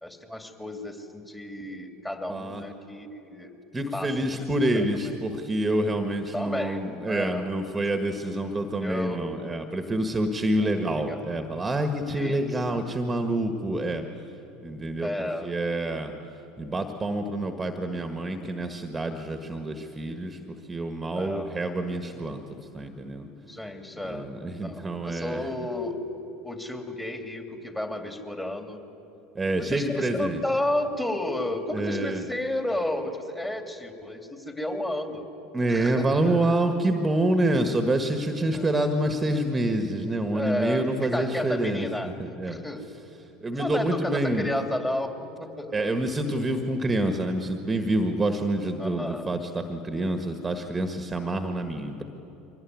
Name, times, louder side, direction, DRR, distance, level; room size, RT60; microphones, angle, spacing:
voice 1, 0.0-3.5 3.9-5.2 6.3-7.5 8.8-9.3 10.6-10.7 11.1-11.2 12.1-12.8 15.0-15.5 21.1-21.6 23.3-26.1 26.4-28.8 29.6-35.3 35.7-36.4 38.5-38.7 40.3-42.1 42.4-42.9 43.6-45.9 48.8-49.3, left 1 dB, 10° left, 5 dB, 2.9 m, -32 dB
voice 2, 2.3-2.6 3.7-14.1 14.6-15.1 15.4-16.1 16.6-20.4 20.7-22.4 22.7-23.3 24.1-25.5 29.3-30.4 31.7-32.2 35.5-42.6 43.4-44.5 45.7-52.0, right 1 dB, 15° right, 7 dB, 1.6 m, -27 dB
23.5 x 18.5 x 9.5 m, 3.0 s
hypercardioid pair, 75°, 0 cm